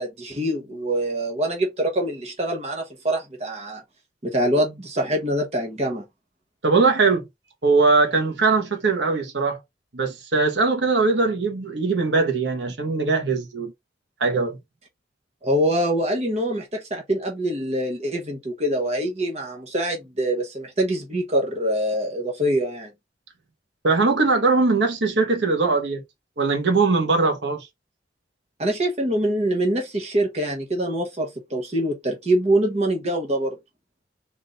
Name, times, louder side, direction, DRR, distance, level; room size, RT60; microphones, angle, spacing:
voice 1, 0.0-3.8 4.2-6.0 15.4-22.9 28.6-33.6, right 1 dB, 35° right, 1.1 m, -24 dB
voice 2, 6.6-7.3 7.6-9.6 9.9-13.7 14.2-14.6 23.8-26.0 26.4-27.7, right 3 dB, 80° right, 1.2 m, -21 dB
3.7 x 2.7 x 3.9 m
head